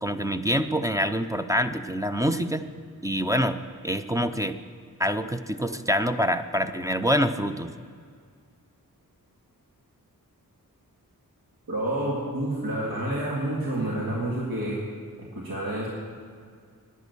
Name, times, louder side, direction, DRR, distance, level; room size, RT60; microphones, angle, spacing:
voice 1, 0.0-2.7 3.0-4.6 5.0-7.7, equal, 10° right, 9 dB, 0.5 m, -26 dB
voice 2, 11.7-14.8 15.3-15.9, right 1 dB, 80° right, -4 dB, 2.0 m, -28 dB
10.5 x 10.0 x 6.9 m, 2.1 s
wide cardioid pair, 90°, 35 cm